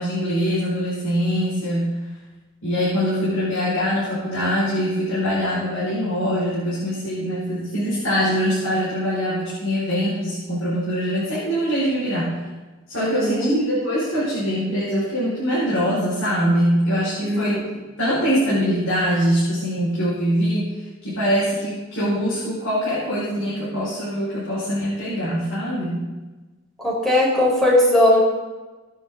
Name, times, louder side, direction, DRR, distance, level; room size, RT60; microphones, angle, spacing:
voice 1, 0.0-2.0 2.6-12.4 12.9-17.6 18.0-20.7 21.0-26.0, equal, 75° left, -9 dB, 5.4 m, -23 dB
voice 2, 13.0-13.6 17.2-17.6 26.8-28.2, left 1 dB, ahead, -5 dB, 4.6 m, -18 dB
19.5 x 9.7 x 3.9 m, 1.2 s
head